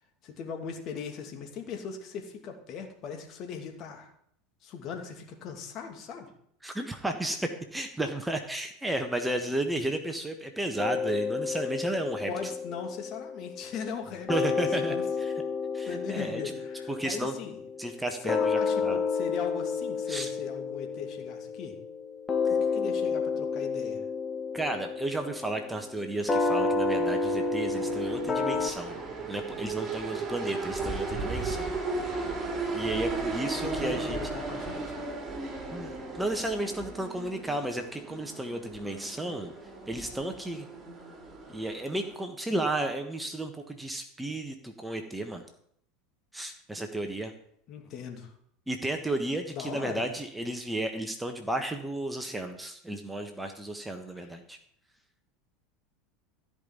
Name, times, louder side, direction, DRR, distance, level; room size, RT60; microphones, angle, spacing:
voice 1, 0.2-4.1 4.6-6.3 12.3-14.3 14.8-15.0 15.9-17.6 18.2-21.8 22.5-24.0 33.6-35.0 47.7-48.3 49.5-50.1 54.2-54.3, left 6 dB, 40° left, 3 dB, 2.6 m, -39 dB
voice 2, 6.6-12.5 14.3-15.3 15.7-16.4 16.9-17.3 17.8-19.0 20.1-20.3 24.5-29.0 29.3-31.8 32.5-34.2 35.7-39.5 39.9-40.7 41.5-45.4 46.3-47.3 48.7-54.6, right 1 dB, 5° right, 5 dB, 1.4 m, -33 dB
sound 1, 10.8-14.0 14.3-28.7, left 4 dB, 20° left, 1.5 m, -31 dB
sound 2, 26.2-42.1, right 3 dB, 25° right, 3.8 m, -36 dB
14.0 x 5.4 x 9.0 m, 0.68 s
figure-of-eight pair, 80°, 0 cm